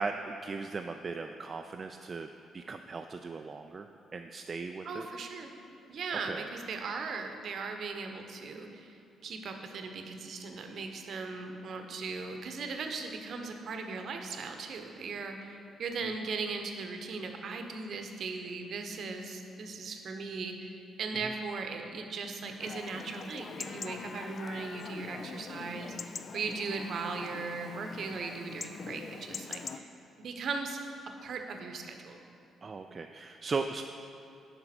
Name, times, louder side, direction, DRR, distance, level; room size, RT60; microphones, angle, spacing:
voice 1, 0.0-2.3 2.5-5.1 6.2-6.5 21.2-21.3 32.6-33.8, right 4 dB, 40° right, 5 dB, 0.3 m, -37 dB
voice 2, 4.8-5.5 5.9-29.9 30.2-30.8 31.2-32.2, right 4 dB, 60° right, 5 dB, 0.8 m, -38 dB
Chatter / Livestock farm animals working animals / Chirp tweet, 22.6-29.8, left 5 dB, 50° left, 0.4 m, -43 dB
9.6 x 5.6 x 4.3 m, 2.7 s
hypercardioid pair, 45°, 0 cm